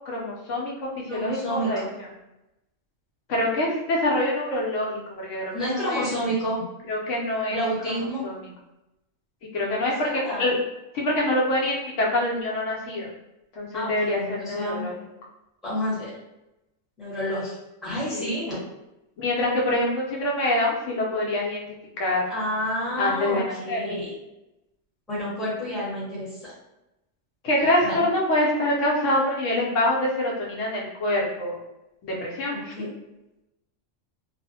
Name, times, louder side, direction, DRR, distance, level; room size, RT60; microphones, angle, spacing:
voice 1, 0.1-1.8 3.3-6.1 6.9-7.6 7.8-8.3 9.5-10.5 10.9-13.1 13.6-14.9 18.1-18.3 19.2-21.6 22.0-22.2 23.0-23.8 27.4-31.6 32.0-32.8, left 1 dB, 75° left, -3 dB, 0.9 m, -25 dB
voice 2, 1.1-1.9 5.5-6.6 7.5-8.2 10.0-10.5 13.7-14.9 15.6-16.1 17.0-17.6 17.8-18.6 22.3-24.1 25.1-26.5 27.8-28.1 32.5-32.9, equal, ahead, -8 dB, 0.7 m, -29 dB
2.4 x 2.0 x 2.6 m, 0.93 s
omnidirectional pair, 1.3 m